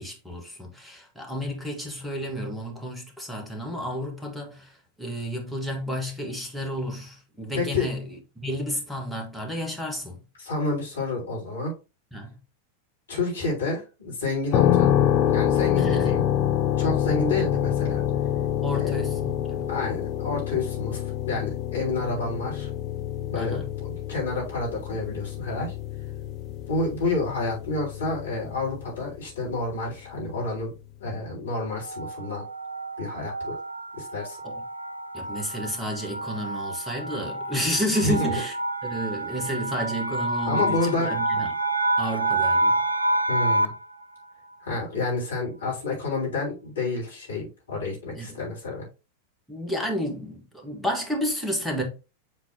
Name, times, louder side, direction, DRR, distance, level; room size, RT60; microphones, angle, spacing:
voice 1, 0.0-4.7 5.0-10.2 12.1-12.4 15.8-16.1 18.6-19.7 23.4-23.7 34.4-34.6 35.1-38.5 38.8-41.5 42.0-42.8 48.2-48.3 49.5-51.8, equal, ahead, 1.8 m, -31 dB
voice 2, 7.5-7.9 10.4-11.7 13.1-14.9 15.3-16.2 16.8-18.0 18.7-19.0 19.7-22.7 23.2-25.7 26.7-30.7 31.0-32.4 33.0-33.6 34.0-34.4 38.0-38.3 40.5-41.2 43.3-43.7 44.6-48.8, left 3 dB, 70° left, 3.3 m, -29 dB
sound 1, 14.5-29.2, left 10 dB, 35° left, 0.9 m, -26 dB
sound 2, 31.8-43.9, right 2 dB, 85° right, 0.5 m, -28 dB
7.7 x 4.1 x 3.0 m
figure-of-eight pair, 90°, 0 cm